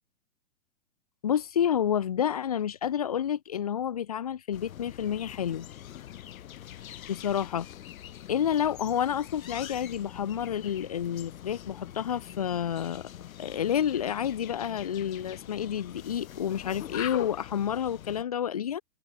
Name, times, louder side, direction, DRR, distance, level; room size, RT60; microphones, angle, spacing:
voice 1, 1.2-5.7 7.1-7.7 8.3-13.1 13.4-18.8, left 9 dB, 30° left, 0.5 m, -29 dB
sound 1, 4.5-18.2, left 11 dB, 80° left, 0.9 m, -43 dB
open air
hypercardioid pair, 170°, 41 cm